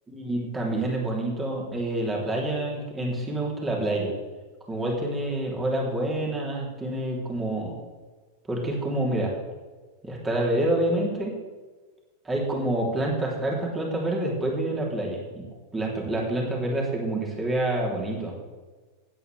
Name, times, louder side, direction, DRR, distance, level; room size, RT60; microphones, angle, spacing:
voice 1, 0.1-4.1 4.7-7.8 8.5-9.3 10.0-11.3 12.3-15.5 15.7-18.3, right 1 dB, 15° right, -2 dB, 3.5 m, -27 dB
16.0 x 9.8 x 3.5 m, 1.3 s
figure-of-eight pair, 90°, 0 cm